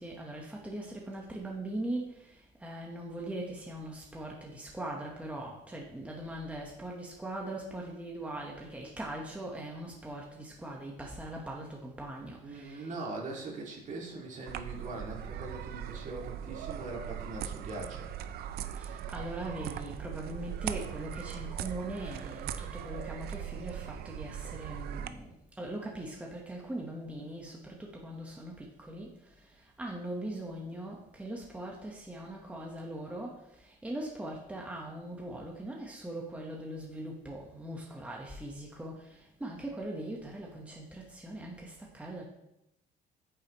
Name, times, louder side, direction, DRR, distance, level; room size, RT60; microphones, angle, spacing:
voice 1, 0.0-12.9 18.7-25.3 25.6-29.1 29.8-42.2, right 1 dB, 10° right, -1 dB, 1.3 m, -40 dB
voice 2, 12.4-18.1, right 2 dB, 45° right, -1 dB, 2.2 m, -41 dB
sound 1, 14.5-25.1, right 10 dB, 65° right, 0.5 m, -40 dB
8.8 x 7.7 x 3.1 m, 0.85 s
cardioid pair, 110°, 17 cm